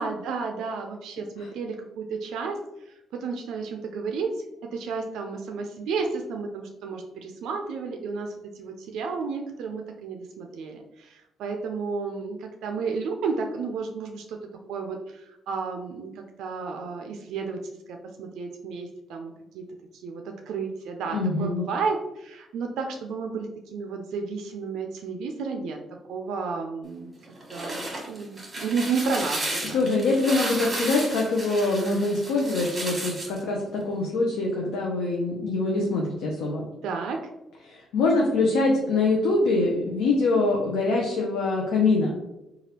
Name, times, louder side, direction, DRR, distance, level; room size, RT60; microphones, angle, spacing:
voice 1, 0.0-4.4 4.7-14.4 14.7-17.6 17.9-19.6 20.0-25.8 26.1-27.1 27.5-27.8 28.1-29.8 36.8-37.3, right 4 dB, 85° right, 3 dB, 0.3 m, -32 dB
voice 2, 21.1-21.6 29.6-36.6 37.7-42.1, left 3 dB, 90° left, -2 dB, 0.5 m, -24 dB
sound 1, 27.3-33.4, right 1 dB, 25° right, 1.3 m, -33 dB
3.2 x 2.3 x 2.8 m, 0.92 s
cardioid pair, 90°, 0 cm